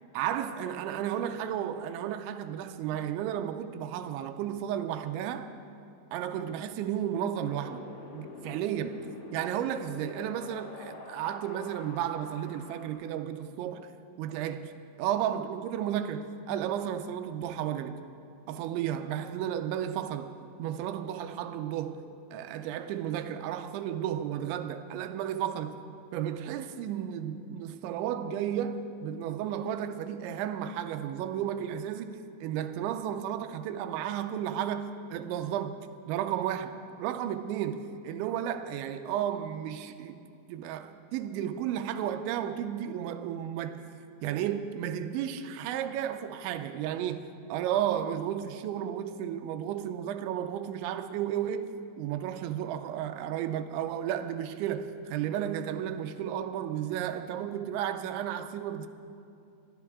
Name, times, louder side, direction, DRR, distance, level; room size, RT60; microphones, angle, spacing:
voice 1, 0.2-5.5 6.1-7.8 8.1-9.1 9.3-13.9 14.2-14.7 15.0-18.0 18.5-25.8 26.1-35.8 36.1-43.8 44.2-58.9, right 10 dB, 85° right, 2.9 m, -33 dB
Wind, 7.4-12.9, left 3 dB, 80° left, 4.0 m, -46 dB
23.0 x 13.5 x 3.6 m
omnidirectional pair, 5.3 m